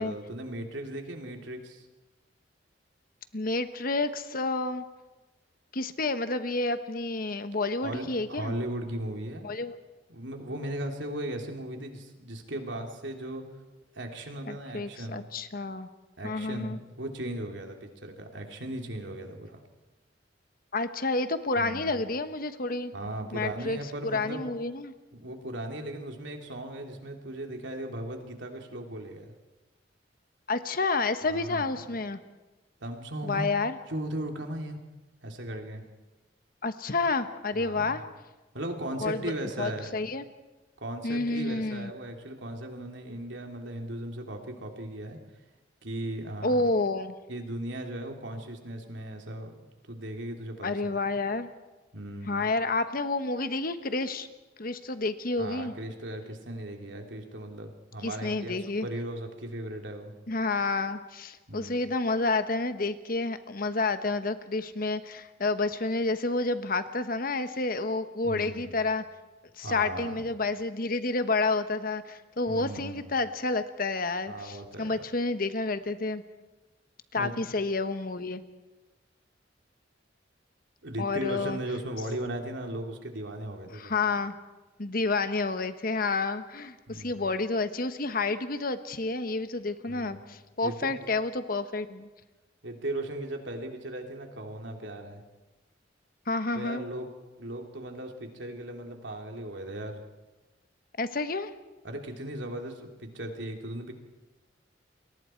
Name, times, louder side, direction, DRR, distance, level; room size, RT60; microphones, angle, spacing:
voice 1, 0.0-1.8 7.8-9.5 10.1-13.4 13.9-15.2 16.2-19.6 21.6-22.0 22.9-24.5 25.1-29.2 31.3-31.7 32.8-33.5 33.9-34.8 35.2-35.8 37.5-38.0 38.5-39.9 40.8-45.2 45.8-46.7 47.3-49.5 49.9-50.8 51.9-52.5 55.4-58.5 58.8-60.1 61.5-61.7 68.2-68.7 69.6-70.2 72.5-73.1 74.3-75.0 77.1-77.3 80.8-83.9 86.9-87.3 89.9-90.2 90.6-90.9 92.6-95.2 96.5-97.1 97.4-100.0 101.8-103.9, right 1 dB, 75° right, 3 dB, 3.2 m, -37 dB
voice 2, 3.3-4.8 5.7-8.5 9.4-9.8 14.5-15.9 16.2-16.8 20.7-22.9 23.3-24.9 30.5-32.2 33.2-33.8 36.6-38.0 39.0-39.3 39.6-40.2 41.0-41.9 46.4-47.1 50.6-51.5 52.3-54.3 54.6-55.7 58.0-58.9 60.3-69.0 69.6-76.2 77.1-78.4 81.0-81.6 83.7-84.3 84.8-92.1 96.3-96.8 101.0-101.5, left 3 dB, 50° left, 10 dB, 1.2 m, -29 dB
29.5 x 22.5 x 4.6 m, 1.1 s
head